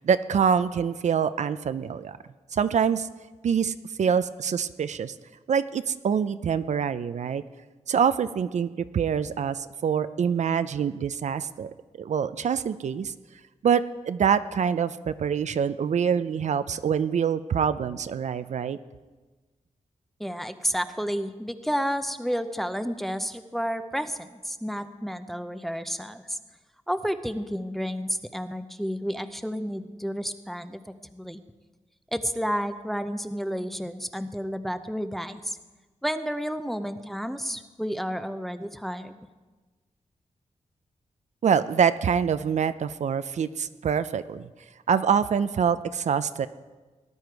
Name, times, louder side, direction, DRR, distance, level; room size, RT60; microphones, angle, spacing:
voice 1, 0.0-2.2 2.5-3.1 3.4-5.1 5.5-7.4 7.9-13.1 13.6-18.8 41.4-44.5 44.9-46.5, right 7 dB, 65° right, 13 dB, 0.5 m, -25 dB
voice 2, 20.2-26.4 26.9-30.8 31.1-31.4 32.1-35.6 36.0-39.2, equal, ahead, 9 dB, 0.6 m, -31 dB
18.5 x 11.0 x 4.6 m, 1.3 s
wide cardioid pair, 130°, 13 cm